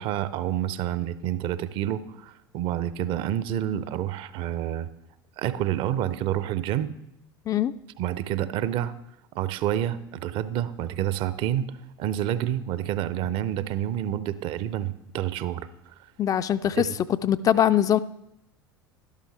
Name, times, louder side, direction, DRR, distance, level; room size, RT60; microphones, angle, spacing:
voice 1, 0.0-4.9 5.4-6.9 8.0-8.9 9.3-11.7 12.0-15.7 16.8-16.9, right 11 dB, 45° right, 16 dB, 0.6 m, -28 dB
voice 2, 16.2-16.9 17.2-18.0, left 10 dB, 30° left, 13 dB, 0.4 m, -22 dB
12.0 x 12.0 x 3.3 m, 0.83 s
figure-of-eight pair, 70°, 12 cm